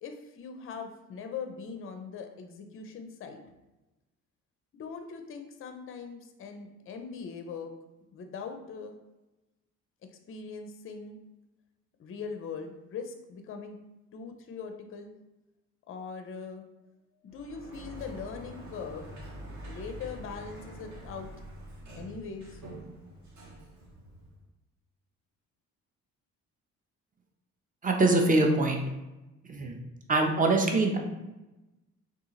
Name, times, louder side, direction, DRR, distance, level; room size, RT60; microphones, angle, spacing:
voice 1, 0.0-3.5 4.7-7.7 8.1-9.0 10.3-11.2 12.0-13.8 14.1-15.1 15.9-16.6 17.2-19.1 19.6-21.3 22.0-22.6, left 5 dB, 30° left, 5 dB, 0.5 m, -41 dB
Sliding door, 17.3-24.5, right 1 dB, 45° right, 1.0 m, -45 dB
voice 2, 27.8-28.8 29.4-29.8 30.1-31.0, right 2 dB, 20° right, 2 dB, 0.6 m, -24 dB
3.6 x 2.4 x 2.7 m, 1.0 s
figure-of-eight pair, 40°, 42 cm